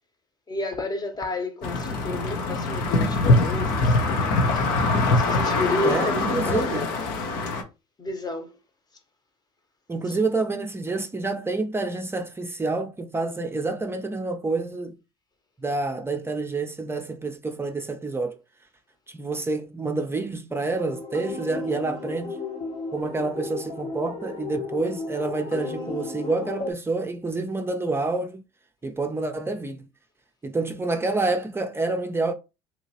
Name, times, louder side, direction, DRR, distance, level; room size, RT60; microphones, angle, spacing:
voice 1, 0.5-4.6 5.1-6.9 8.0-8.5 10.1-10.2, left 2 dB, 25° left, 1.0 m, -31 dB
sound 1, 1.6-7.6, left 2 dB, 65° left, 0.8 m, -23 dB
voice 2, 5.8-6.9 9.9-15.0 15.6-18.4 19.1-22.4 22.9-28.4 28.8-29.9 30.4-32.3, right 3 dB, 15° right, 0.6 m, -28 dB
sound 2, 20.7-26.7, left 3 dB, 50° left, 1.1 m, -34 dB
2.9 x 2.8 x 2.8 m
hypercardioid pair, 70°, 15 cm